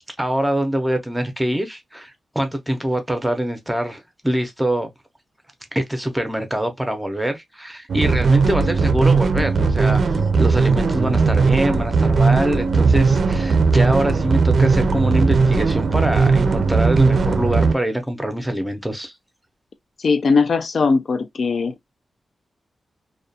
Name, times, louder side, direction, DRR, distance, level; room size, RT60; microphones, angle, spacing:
voice 1, 0.2-4.9 5.7-19.1, right 1 dB, 5° right, 0.6 m, -24 dB
sound 1, 7.9-17.7, right 4 dB, 60° right, 0.4 m, -17 dB
voice 2, 20.0-21.7, left 4 dB, 60° left, 0.3 m, -19 dB
2.3 x 2.2 x 2.6 m
wide cardioid pair, 95°, 0 cm